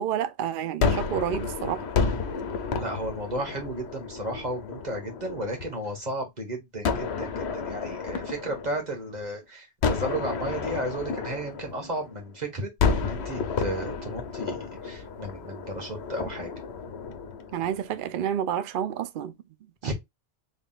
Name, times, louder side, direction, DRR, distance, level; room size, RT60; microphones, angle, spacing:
voice 1, 0.0-1.8 17.5-19.3 19.8-19.9, right 9 dB, 60° right, 0.6 m, -29 dB
Gunshot gunfire, 0.8-5.9 6.8-9.3 9.8-12.3 12.8-18.0, left 5 dB, 75° left, 1.0 m, -31 dB
voice 2, 2.7-16.5 19.8-19.9, right 1 dB, 40° right, 1.6 m, -34 dB
3.8 x 3.6 x 2.4 m
omnidirectional pair, 1.1 m